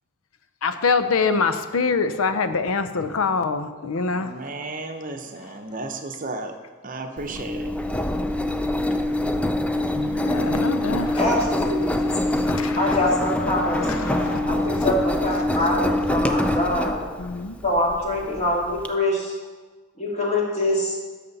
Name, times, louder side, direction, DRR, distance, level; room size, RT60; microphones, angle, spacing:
voice 1, 0.6-4.3 10.1-11.3 11.8-13.0 13.7-14.9 17.2-17.6, left 4 dB, 80° left, 10 dB, 0.6 m, -25 dB
voice 2, 4.1-6.5 6.8-7.7 9.9-10.1, right 2 dB, 40° right, 6 dB, 0.8 m, -33 dB
Engine, 7.2-18.9, left 1 dB, 5° left, 0.3 m, -25 dB
voice 3, 11.2-12.3 12.7-17.0 17.6-19.3 20.0-21.0, left 1 dB, 30° left, -3 dB, 2.0 m, -24 dB
11.0 x 6.7 x 4.0 m, 1.3 s
head